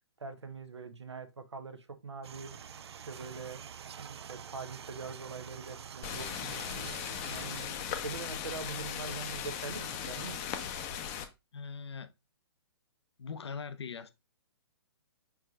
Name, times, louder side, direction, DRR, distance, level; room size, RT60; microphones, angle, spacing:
voice 1, 0.2-2.6 3.1-3.6 4.0-6.9 7.3-10.7, right 4 dB, 85° right, 0.8 m, -43 dB
sound 1, 2.2-7.7, right 7 dB, 70° right, 0.4 m, -47 dB
sound 2, 6.0-11.3, left 8 dB, 30° left, 0.6 m, -38 dB
voice 2, 11.5-12.1 13.2-14.1, left 5 dB, 75° left, 0.5 m, -41 dB
4.7 x 4.6 x 2.3 m
figure-of-eight pair, 125°, 14 cm